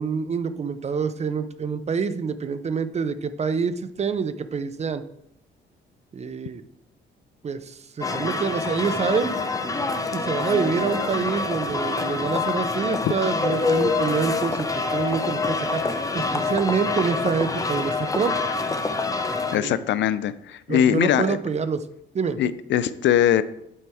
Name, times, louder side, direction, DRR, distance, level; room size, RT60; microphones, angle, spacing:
voice 1, 0.0-5.0 6.1-6.6 7.4-9.4 10.1-18.3 19.5-19.8 20.7-21.8 22.1-22.4, right 5 dB, 35° right, 12 dB, 0.5 m, -26 dB
sound 1, 8.0-19.6, left 3 dB, 15° left, 0.6 m, -26 dB
voice 2, 19.5-21.4 22.4-23.4, left 10 dB, 65° left, 15 dB, 0.4 m, -21 dB
8.5 x 4.4 x 3.5 m, 0.80 s
cardioid pair, 90°, 20 cm